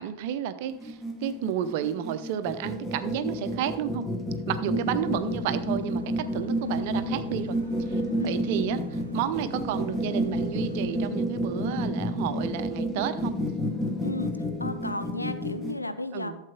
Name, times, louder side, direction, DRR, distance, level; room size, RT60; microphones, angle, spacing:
voice 1, 0.0-4.1 4.5-7.6 7.9-13.3 16.1-16.4, right 9 dB, 50° right, 12 dB, 0.7 m, -31 dB
sound 1, 0.7-15.8, equal, 10° left, 1.5 m, -30 dB
sound 2, 4.8-11.1, right 2 dB, 80° right, 0.7 m, -45 dB
voice 2, 14.0-16.3, left 1 dB, 85° left, 10 dB, 0.6 m, -34 dB
12.5 x 7.4 x 3.7 m, 0.82 s
figure-of-eight pair, 90°, 0 cm